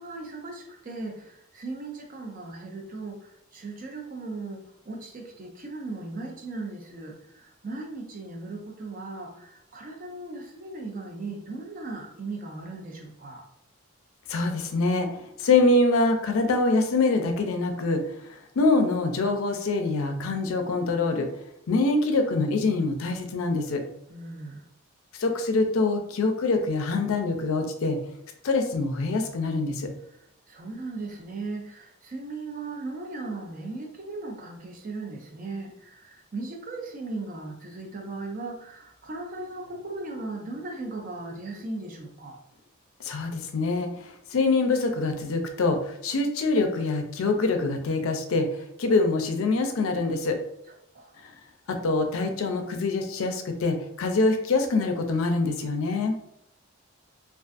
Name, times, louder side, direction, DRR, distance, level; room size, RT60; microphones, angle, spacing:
voice 1, 0.0-13.5 24.1-24.6 30.5-42.4 50.9-51.2, right 3 dB, 40° right, 1 dB, 0.4 m, -37 dB
voice 2, 14.3-18.0 18.6-21.3 21.7-23.8 25.2-28.0 28.4-29.9 43.0-43.9 44.3-48.5 48.8-50.4 51.7-56.2, left 3 dB, 75° left, 5 dB, 0.4 m, -24 dB
2.4 x 2.3 x 2.5 m, 0.77 s
head